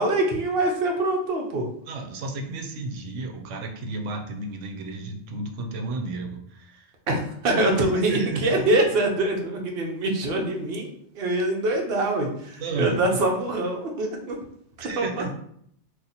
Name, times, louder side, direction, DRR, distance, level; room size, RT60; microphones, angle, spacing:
voice 1, 0.0-1.7 7.1-14.4 15.0-15.2, right 2 dB, 60° right, 1 dB, 0.9 m, -24 dB
voice 2, 1.9-6.9 7.8-8.6 12.6-13.2 14.8-15.3, right 2 dB, 85° right, 3 dB, 0.9 m, -33 dB
2.8 x 2.4 x 3.9 m, 0.68 s
omnidirectional pair, 1.2 m